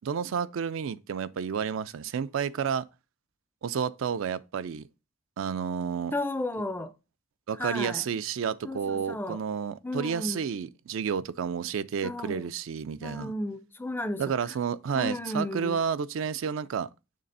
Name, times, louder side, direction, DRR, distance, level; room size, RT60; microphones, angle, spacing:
voice 1, 0.0-2.8 3.6-4.9 5.4-6.1 7.5-13.3 14.2-16.9, right 7 dB, 70° right, 0.4 m, -31 dB
voice 2, 6.1-6.9 7.6-8.1 8.6-9.4 9.8-10.4 12.0-12.5 13.0-14.2 14.9-15.8, left 1 dB, 10° left, 0.4 m, -33 dB
6.7 x 3.3 x 5.4 m
head